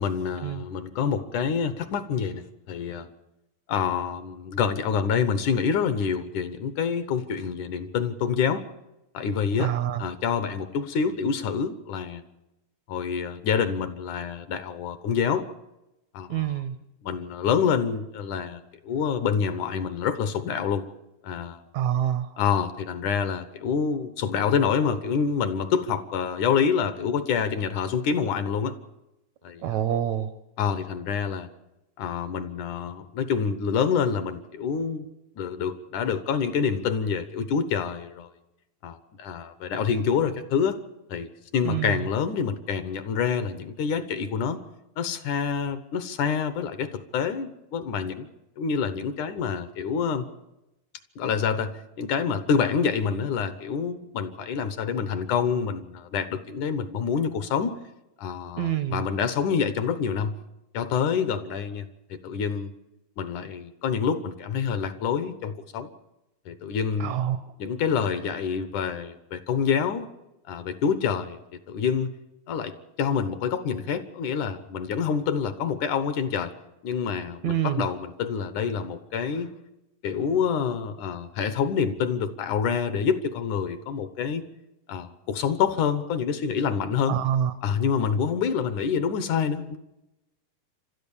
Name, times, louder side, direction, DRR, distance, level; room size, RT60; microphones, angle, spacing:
voice 1, 0.0-3.1 3.7-8.6 9.1-9.7 10.0-12.2 12.9-15.5 16.1-16.6 17.0-20.8 21.2-21.6 22.4-28.7 29.4-29.8 30.6-31.5 32.0-35.1 35.4-38.3 38.8-40.8 41.1-44.6 45.0-48.3 48.6-50.3 51.2-51.7 52.0-57.8 58.2-60.4 60.7-62.7 63.2-65.9 66.5-67.2 67.6-70.1 70.5-72.1 72.5-72.7 73.0-76.5 76.8-79.5 80.0-84.5 84.9-87.2 87.6-89.8, left 6 dB, 70° left, 12 dB, 2.3 m, -27 dB
voice 2, 9.6-10.1 16.3-16.7 21.7-22.3 29.6-30.3 41.6-42.0 58.6-59.0 67.0-67.4 77.4-77.8 87.1-87.5, right 10 dB, 70° right, 11 dB, 1.9 m, -26 dB
29.0 x 13.0 x 7.1 m, 0.94 s
omnidirectional pair, 4.0 m